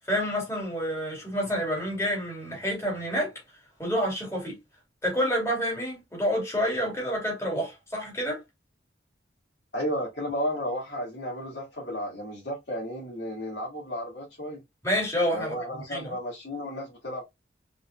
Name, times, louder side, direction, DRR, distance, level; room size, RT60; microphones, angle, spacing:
voice 1, 0.1-3.3 3.8-4.6 5.0-8.4 14.8-15.5 15.9-16.1, equal, 15° left, 2.7 m, -28 dB
voice 2, 9.7-14.6 15.3-17.2, equal, 75° left, 2.0 m, -33 dB
5.3 x 3.8 x 2.3 m
head